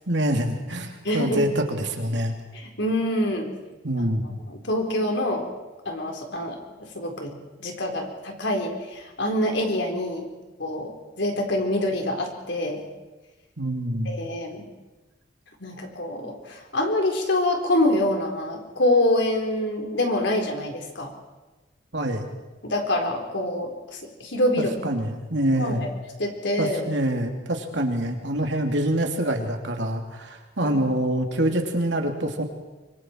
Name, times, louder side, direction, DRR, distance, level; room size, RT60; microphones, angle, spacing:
voice 1, 0.1-2.3 3.8-4.4 13.6-14.2 21.9-22.2 24.6-25.9 26.6-32.4, right 1 dB, 70° right, 3 dB, 2.8 m, -25 dB
voice 2, 1.0-1.4 2.5-3.5 4.0-4.1 4.5-5.5 5.8-10.3 10.6-10.9 11.2-12.8 14.0-14.6 15.6-21.1 22.6-24.8 25.5-25.9 26.2-26.8 30.6-30.8, left 1 dB, 70° left, 2 dB, 4.3 m, -26 dB
25.5 x 24.0 x 4.6 m, 1.2 s
head